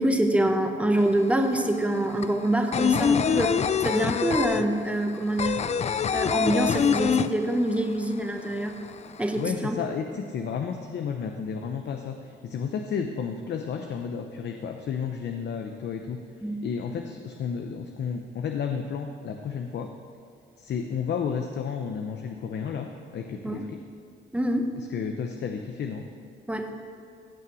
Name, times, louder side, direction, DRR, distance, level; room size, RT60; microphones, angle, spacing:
voice 1, 0.0-5.6 6.1-8.9 9.2-9.8 16.4-16.6 23.4-23.7 24.3-24.8 26.5-26.7, right 1 dB, 5° right, 4 dB, 1.1 m, -25 dB
sound 1, 1.0-1.1 1.3-7.9 8.2-8.3 8.6-9.4, left 7 dB, 35° left, 0.4 m, -24 dB
voice 2, 9.4-16.2 16.6-19.9 20.6-22.9 23.1-23.8 24.8-26.0, left 6 dB, 60° left, 5 dB, 0.8 m, -32 dB
16.0 x 5.8 x 6.2 m, 2.3 s
cardioid pair, 90°, 20 cm